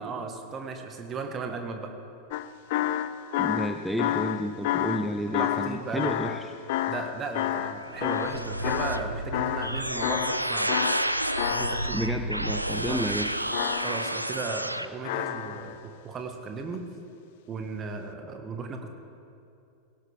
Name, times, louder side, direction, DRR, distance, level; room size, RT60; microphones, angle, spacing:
voice 1, 0.0-1.9 5.4-6.3 6.9-10.7 11.5-12.0 12.7-13.0 13.8-16.8 17.5-18.9, right 4 dB, 25° right, 4 dB, 1.7 m, -36 dB
sound 1, 2.3-9.1 9.3-9.7 10.0-12.1 13.5-14.3 15.0-15.8 16.7-16.8, left 13 dB, 50° left, 0.5 m, -29 dB
voice 2, 3.4-6.5 11.9-13.4, equal, ahead, 5 dB, 0.6 m, -31 dB
sound 2, 7.2-14.9, right 1 dB, 85° right, 0.5 m, -30 dB
17.0 x 17.0 x 3.6 m, 2.7 s
figure-of-eight pair, 90°, 0 cm